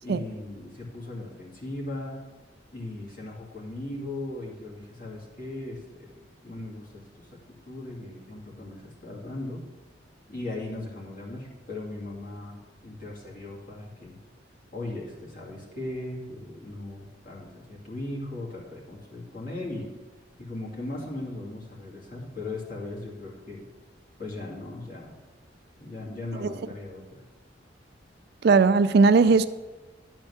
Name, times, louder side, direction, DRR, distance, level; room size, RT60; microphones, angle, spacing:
voice 1, 0.0-2.2 2.7-7.3 7.6-9.6 10.3-12.6 12.8-14.1 14.7-19.9 20.4-23.6 24.2-25.1 25.8-27.2, left 2 dB, 50° left, 2.3 m, -38 dB
voice 2, 28.4-29.4, right 4 dB, 60° right, 0.4 m, -18 dB
11.0 x 4.4 x 7.0 m
head